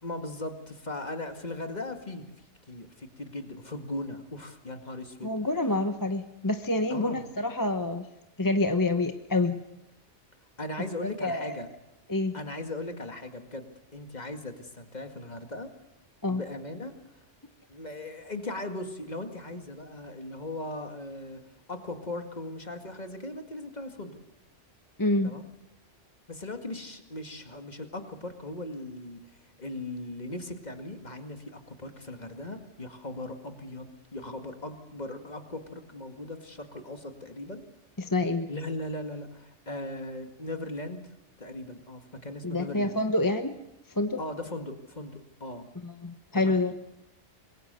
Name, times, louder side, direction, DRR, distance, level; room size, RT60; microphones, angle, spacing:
voice 1, 0.0-2.3 2.7-5.3 6.9-7.2 10.6-11.7 12.3-15.7 16.3-17.0 17.7-21.4 21.7-24.2 25.2-25.5 26.3-37.6 38.5-41.1 41.4-43.0 44.2-45.7 46.3-46.6, left 2 dB, 35° left, 6 dB, 2.1 m, -38 dB
voice 2, 5.2-8.1 8.4-9.6 11.0-11.6 12.1-12.4 16.2-16.4 25.0-25.4 38.0-38.5 42.4-43.5 43.9-44.2 45.8-46.7, left 2 dB, 20° left, 7 dB, 0.9 m, -27 dB
26.5 x 21.5 x 6.8 m, 0.89 s
omnidirectional pair, 1.2 m